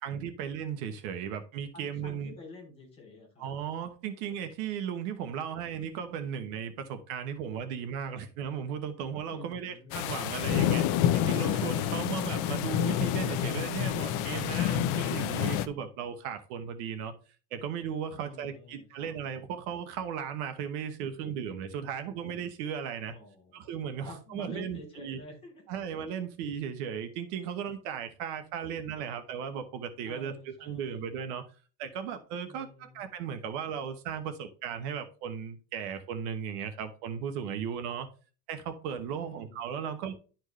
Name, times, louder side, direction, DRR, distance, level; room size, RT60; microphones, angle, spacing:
voice 1, 0.0-2.3 3.4-10.9 11.1-17.1 17.5-23.1 23.5-25.2 25.7-31.4 31.8-38.1 38.5-40.1, right 8 dB, 65° right, 9 dB, 1.2 m, -36 dB
voice 2, 1.7-3.5 9.2-10.9 18.1-19.2 23.1-23.7 24.0-25.6 30.1-31.0 32.4-33.1 39.1-40.1, left 2 dB, 10° left, -1 dB, 3.1 m, -49 dB
sound 1, 9.9-15.7, left 10 dB, 40° left, 0.6 m, -28 dB
11.5 x 4.5 x 3.1 m, 0.36 s
cardioid pair, 160°, 48 cm